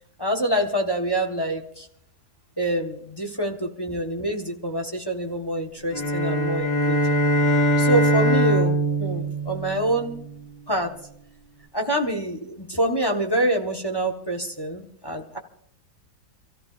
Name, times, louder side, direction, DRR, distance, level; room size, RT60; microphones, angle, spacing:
voice 1, 0.2-1.9 2.6-7.2 7.8-10.2 10.7-10.9 11.7-15.4, right 1 dB, 15° left, 2 dB, 1.0 m, -26 dB
sound 1, 5.9-10.4, right 1 dB, 85° left, 4.0 m, -22 dB
28.0 x 14.5 x 2.5 m, 0.71 s
omnidirectional pair, 2.2 m